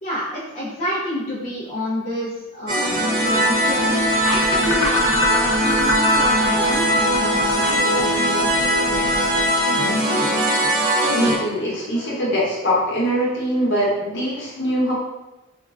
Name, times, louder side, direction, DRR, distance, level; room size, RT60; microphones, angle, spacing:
voice 1, 0.0-4.0 4.2-8.6, equal, 30° left, -9 dB, 0.5 m, -29 dB
sound 1, 2.7-11.4, equal, 40° right, 0.5 m, -20 dB
sound 2, 3.2-10.4, left 4 dB, 85° left, 0.5 m, -29 dB
voice 2, 11.1-14.9, equal, 50° left, -6 dB, 0.9 m, -22 dB
3.1 x 2.2 x 2.3 m, 1.0 s
head